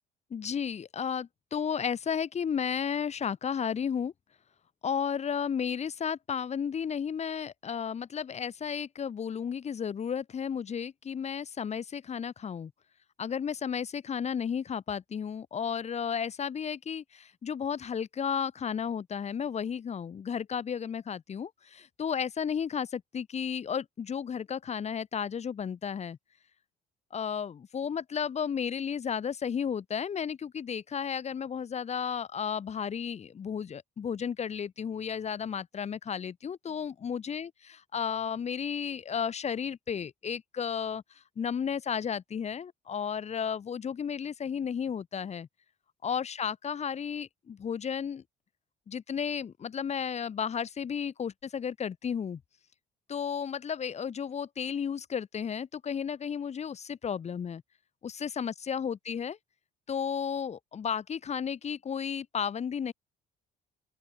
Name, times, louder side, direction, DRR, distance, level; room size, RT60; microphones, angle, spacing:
voice 1, 0.3-4.1 4.8-12.7 13.2-26.2 27.1-37.5 37.9-41.0 41.4-45.5 46.0-48.2 48.9-52.4 53.1-57.6 58.0-59.4 59.9-62.9, left 7 dB, 40° left, 4.9 m, -33 dB
open air
cardioid pair, 110°, 17 cm